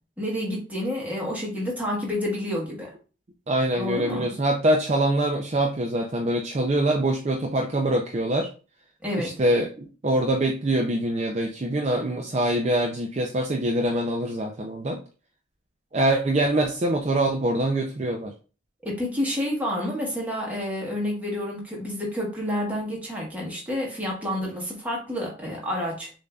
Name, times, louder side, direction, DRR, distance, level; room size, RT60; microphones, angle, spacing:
voice 1, 0.2-2.9 3.8-4.3 9.0-9.3 18.8-26.1, left 1 dB, 10° right, -3 dB, 1.2 m, -29 dB
voice 2, 3.5-8.5 9.2-15.0 15.9-18.3, right 1 dB, 30° right, 1 dB, 0.4 m, -24 dB
6.5 x 2.6 x 2.3 m, 0.36 s
head